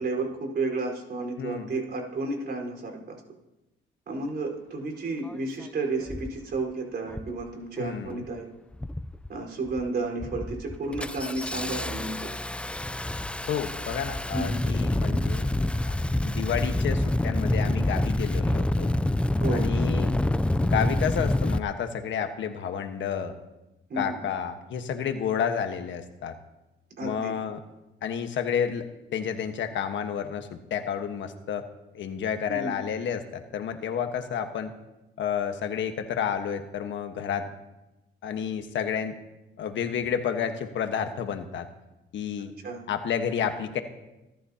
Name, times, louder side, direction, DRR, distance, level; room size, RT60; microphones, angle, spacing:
voice 1, 0.0-3.2 4.1-8.5 9.3-12.3 14.3-14.6 19.4-19.7 23.9-24.2 27.0-27.4 32.5-32.7 42.6-42.8, right 3 dB, 55° right, 1 dB, 4.5 m, -32 dB
voice 2, 1.4-1.7 7.8-8.2 13.5-15.5 15.9-16.0 16.2-18.9 19.5-20.2 20.6-23.4 24.0-26.3 27.0-27.6 28.0-28.9 29.1-31.6 31.9-34.7 35.2-37.5 38.2-39.2 39.6-41.7 42.1-42.5 42.9-43.8, left 8 dB, 70° left, 7 dB, 1.4 m, -30 dB
Engine starting, 5.3-5.4 6.1-6.4 7.1-7.4 7.8-8.3 8.7-9.3 9.7-9.9 10.2-21.6, left 1 dB, 5° left, 0.4 m, -27 dB
26.0 x 13.0 x 2.9 m, 0.98 s
cardioid pair, 90°, 20 cm